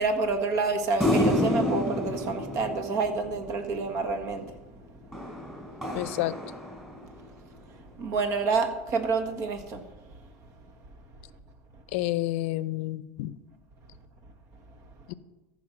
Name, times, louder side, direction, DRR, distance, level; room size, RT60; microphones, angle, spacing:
voice 1, 0.0-4.5 8.0-9.8, right 4 dB, 50° right, 7 dB, 1.7 m, -28 dB
sound 1, 1.0-3.7 5.1-7.2, left 1 dB, 5° right, 4.2 m, -29 dB
voice 2, 5.9-6.3 11.9-13.4 15.1-15.2, left 16 dB, 75° left, 17 dB, 0.6 m, -29 dB
14.0 x 5.3 x 6.4 m, 1.1 s
supercardioid pair, 110°, 7 cm